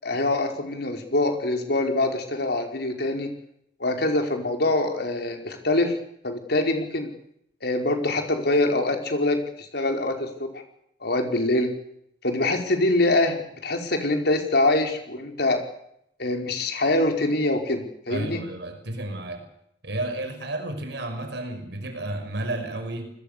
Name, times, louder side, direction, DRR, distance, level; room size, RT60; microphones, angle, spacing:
voice 1, 0.0-3.3 3.8-5.9 6.2-7.1 7.6-10.6 11.0-11.7 12.2-15.6 16.2-18.4, left 2 dB, 60° left, 4 dB, 5.1 m, -24 dB
voice 2, 18.1-19.5 19.8-23.1, right 1 dB, 65° right, 7 dB, 5.9 m, -32 dB
29.0 x 21.5 x 6.9 m, 0.75 s
head